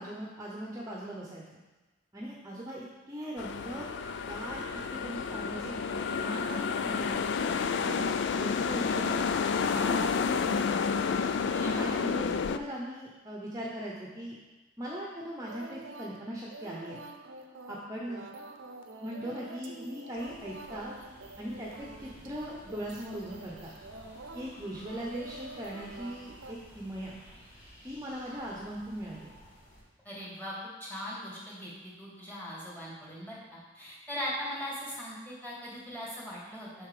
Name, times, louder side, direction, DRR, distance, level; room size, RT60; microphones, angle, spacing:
voice 1, 0.0-1.4 2.1-3.8 4.3-4.6 4.9-7.2 7.8-9.2 9.7-10.8 11.8-14.4 14.8-17.0 17.7-18.3 19.0-20.9 21.4-23.7 24.3-27.2 27.8-29.3, equal, 20° right, -3 dB, 0.9 m, -39 dB
sound 1, 3.4-12.6, left 5 dB, 65° left, 0.4 m, -30 dB
voice 2, 11.5-11.8 30.0-30.5 30.8-36.9, equal, 10° left, -6 dB, 2.5 m, -40 dB
sound 2, 15.5-26.5, right 2 dB, 90° right, 0.7 m, -47 dB
sound 3, 20.1-29.8, equal, 35° left, 2.7 m, -54 dB
7.2 x 5.9 x 4.9 m, 1.2 s
head